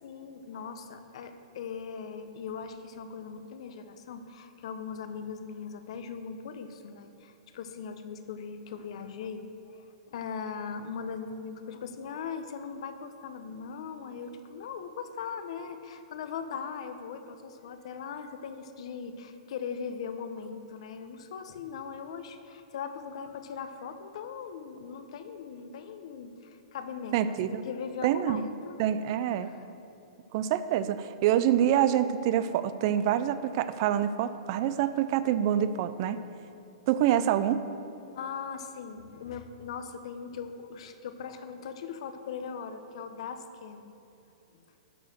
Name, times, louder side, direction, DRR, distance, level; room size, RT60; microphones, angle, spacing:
voice 1, 0.0-28.8 29.4-29.7 38.1-43.9 44.5-44.6, left 6 dB, 65° left, 9 dB, 0.8 m, -40 dB
voice 2, 27.1-27.6 28.0-28.5 28.8-29.5 30.3-36.2 36.9-37.6, right 10 dB, 45° right, 13 dB, 0.4 m, -26 dB
11.5 x 4.8 x 6.5 m, 2.8 s
hypercardioid pair, 145°, 3 cm